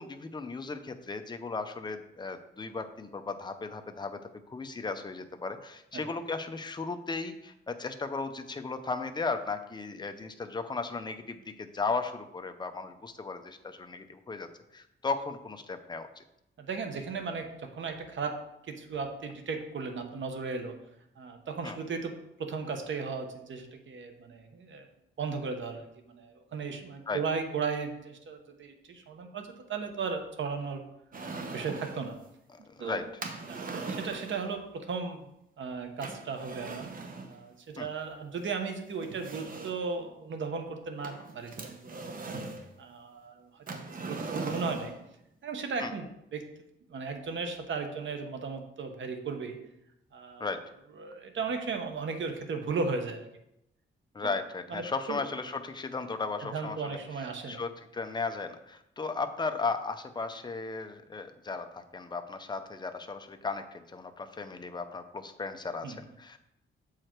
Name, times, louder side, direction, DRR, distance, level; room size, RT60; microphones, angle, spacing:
voice 1, 0.0-4.2 4.5-14.5 14.7-16.2 21.6-21.8 27.1-27.2 32.5-33.0 37.8-37.9 45.8-45.9 50.4-50.6 54.1-57.0 57.5-66.4, left 4 dB, 20° left, 7 dB, 0.6 m, -36 dB
voice 2, 16.6-18.4 18.7-20.7 21.2-22.1 22.4-24.9 25.2-30.8 31.5-32.2 32.8-33.0 33.5-35.3 35.6-36.9 37.3-42.2 42.8-44.9 45.4-46.4 46.9-49.6 50.1-50.5 51.0-53.3 54.2-54.3 54.7-55.2 56.4-57.6 65.8-66.0, right 5 dB, 70° right, 5 dB, 1.1 m, -36 dB
sound 1, 31.1-32.1 33.2-34.5 36.0-37.3 38.4-38.5 39.0-39.9 41.0-42.7 43.7-45.0, right 3 dB, 45° right, 0.9 m, -39 dB
7.5 x 4.9 x 4.5 m, 0.82 s
wide cardioid pair, 135°, 21 cm